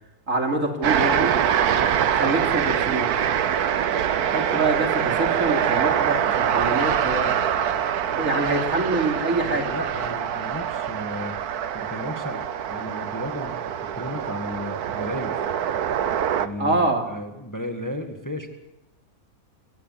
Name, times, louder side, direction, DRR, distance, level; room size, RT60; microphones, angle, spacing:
voice 1, 0.3-1.4 2.1-3.1 4.2-7.3 8.1-9.7 16.6-17.0, right 2 dB, 60° right, 2 dB, 3.2 m, -25 dB
sound 1, 0.8-16.5, right 9 dB, 90° right, 1.4 m, -24 dB
voice 2, 1.7-2.0 9.4-11.4 11.7-13.6 13.9-15.3 16.4-18.5, left 1 dB, 10° left, 4 dB, 1.7 m, -34 dB
24.5 x 18.5 x 5.9 m, 0.93 s
omnidirectional pair, 1.6 m